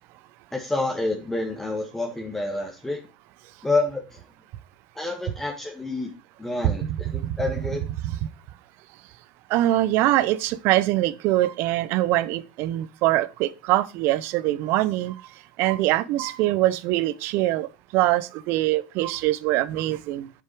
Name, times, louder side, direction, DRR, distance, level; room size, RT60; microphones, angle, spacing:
voice 1, 0.5-3.0 3.6-4.2 4.9-6.1 6.4-7.9, left 2 dB, 10° left, 1.6 m, -28 dB
voice 2, 6.6-7.4 8.0-8.3 9.5-15.1 15.6-17.7 17.9-20.3, right 15 dB, 55° right, 0.7 m, -23 dB
7.4 x 7.2 x 4.6 m
hypercardioid pair, 90°, 5 cm